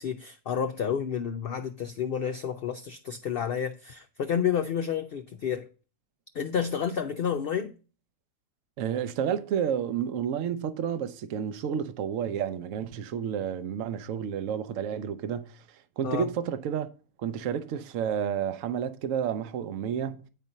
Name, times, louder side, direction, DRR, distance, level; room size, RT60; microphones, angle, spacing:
voice 1, 0.0-5.7 6.3-7.7 16.0-16.3, left 8 dB, 75° left, 0.5 m, -30 dB
voice 2, 8.8-15.6 16.0-16.9 17.2-20.3, right 8 dB, 65° right, 1.0 m, -30 dB
9.2 x 4.3 x 5.2 m
omnidirectional pair, 1.5 m